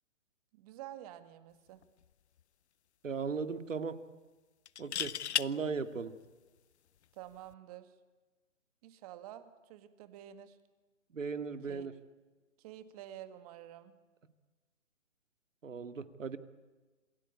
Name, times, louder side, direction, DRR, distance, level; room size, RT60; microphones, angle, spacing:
voice 1, 0.5-1.8 7.1-7.9 8.8-10.6 11.7-11.9 12.6-13.9, right 12 dB, 30° right, 10 dB, 2.0 m, -49 dB
sound 1, 1.8-2.0 2.4-2.5 4.7-5.5 7.3-7.5, left 9 dB, 60° left, 0.8 m, -34 dB
voice 2, 3.0-4.0 4.8-6.1 11.1-11.9 15.6-16.4, right 5 dB, 80° right, 9 dB, 2.2 m, -37 dB
27.5 x 20.0 x 8.7 m, 1.3 s
hypercardioid pair, 145°, 38 cm